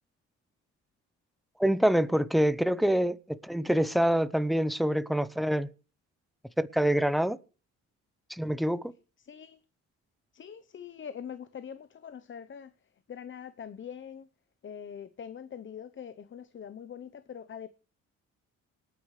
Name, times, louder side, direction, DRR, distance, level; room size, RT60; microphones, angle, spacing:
voice 1, 1.6-5.7 6.6-7.4 8.3-8.9, equal, ahead, 0.8 m, -26 dB
voice 2, 9.2-9.6 10.3-12.7 13.1-14.3 14.6-17.7, left 8 dB, 40° left, 0.8 m, -43 dB
26.5 x 9.5 x 3.2 m
cardioid pair, 90°, 30 cm